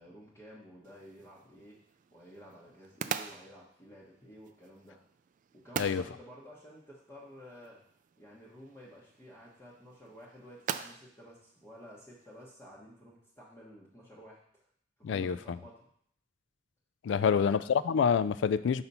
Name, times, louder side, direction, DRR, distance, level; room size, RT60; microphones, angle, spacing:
voice 1, 0.0-1.8 2.1-5.0 5.5-7.8 8.2-14.6 15.1-15.9 17.2-17.7, equal, 15° left, -6 dB, 1.1 m, -52 dB
sound 1, 0.8-12.5, right 8 dB, 45° right, 0.3 m, -44 dB
voice 2, 15.0-15.4 17.0-18.8, left 6 dB, 70° left, 15 dB, 0.3 m, -27 dB
5.9 x 4.2 x 5.4 m, 0.67 s
head